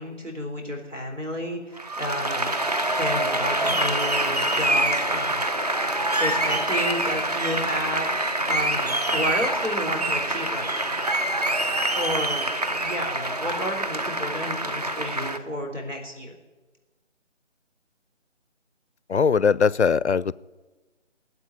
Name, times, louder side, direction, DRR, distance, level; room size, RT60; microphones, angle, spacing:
voice 1, 0.0-2.5 3.0-5.4 6.2-8.1 8.5-10.7 11.9-16.4, equal, 80° right, 2 dB, 4.1 m, -31 dB
Applause, 1.8-15.4, right 1 dB, 35° right, 0.9 m, -25 dB
voice 2, 19.1-20.3, left 6 dB, 65° left, 22 dB, 0.5 m, -20 dB
18.0 x 8.1 x 10.0 m, 1.2 s
figure-of-eight pair, 160°, 36 cm